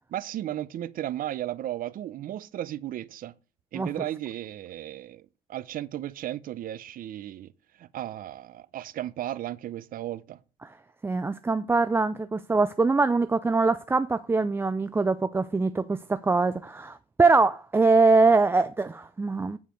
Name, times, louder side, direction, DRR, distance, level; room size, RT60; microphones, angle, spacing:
voice 1, 0.1-3.4 3.7-7.5 7.8-10.4, right 12 dB, 55° right, 0.6 m, -35 dB
voice 2, 11.0-19.6, right 3 dB, 15° right, 0.4 m, -23 dB
9.2 x 4.8 x 5.1 m
cardioid pair, 110°, 17 cm